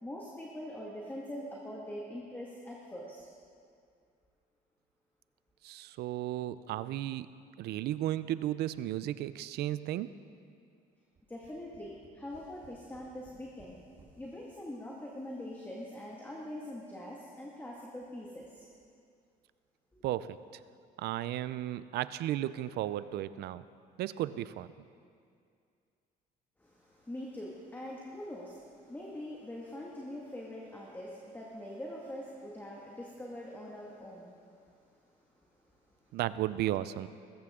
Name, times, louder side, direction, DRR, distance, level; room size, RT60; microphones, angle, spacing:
voice 1, 0.0-3.3 11.3-13.8 14.2-18.7 26.6-36.1, left 1 dB, 10° left, -3 dB, 2.0 m, -44 dB
voice 2, 5.6-7.3 7.6-10.1 20.0-20.6 21.0-23.6 24.0-24.7 36.1-37.1, right 13 dB, 75° right, 15 dB, 0.6 m, -34 dB
Tap, 11.2-14.2 15.0-15.1 15.4-15.5, right 3 dB, 40° right, 3.6 m, -59 dB
21.0 x 14.5 x 3.8 m, 2.3 s
cardioid pair, 110°, 17 cm